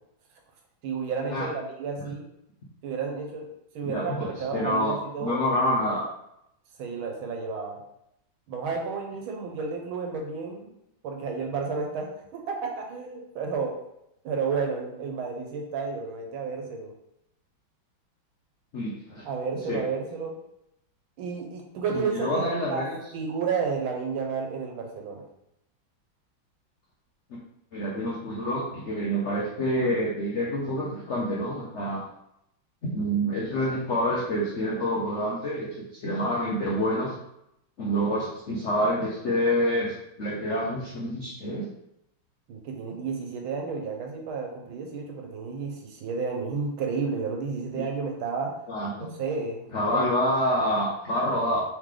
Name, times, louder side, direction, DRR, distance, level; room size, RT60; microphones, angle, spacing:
voice 1, 0.8-2.3 2.8-3.5 3.8-5.5 6.8-7.8 8.5-10.7 11.0-13.8 14.2-16.9 19.3-20.3 21.2-22.9 23.1-25.2 42.5-48.5 49.0-49.7 49.9-50.1, right 5 dB, 90° right, 1 dB, 1.7 m, -31 dB
voice 2, 3.8-6.0 18.7-19.3 19.7-19.8 21.9-23.0 27.7-32.0 32.8-37.2 37.8-41.7 47.7-47.8 48.7-49.1 49.7-51.6, equal, 65° left, -5 dB, 0.7 m, -27 dB
3.7 x 3.2 x 3.7 m, 0.80 s
omnidirectional pair, 2.2 m